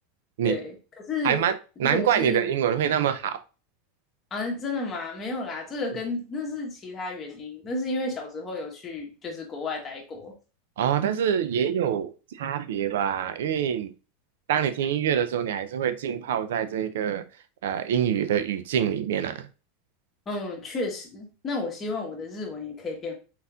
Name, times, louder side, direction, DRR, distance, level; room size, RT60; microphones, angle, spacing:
voice 1, 0.4-1.4 1.8-2.5 4.3-10.3 20.3-23.1, left 3 dB, 20° left, 1.3 m, -32 dB
voice 2, 1.8-3.4 10.8-12.1 12.4-13.9 14.5-17.2 17.6-19.5, right 9 dB, 90° right, 0.4 m, -25 dB
4.2 x 4.1 x 2.4 m
supercardioid pair, 150°, 0 cm